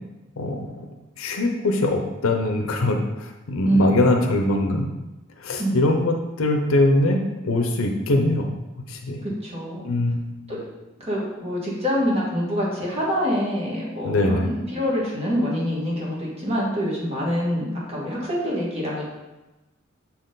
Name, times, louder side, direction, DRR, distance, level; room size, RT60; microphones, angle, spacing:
voice 1, 0.4-0.9 1.2-4.9 5.4-8.6 8.9-9.2 9.8-10.5 14.0-14.5, left 2 dB, 85° left, 4 dB, 0.7 m, -22 dB
voice 2, 3.6-4.1 5.6-5.9 9.2-9.9 10.5-10.6 11.0-19.0, equal, 30° right, -5 dB, 1.7 m, -26 dB
6.9 x 4.3 x 3.9 m, 1.0 s
head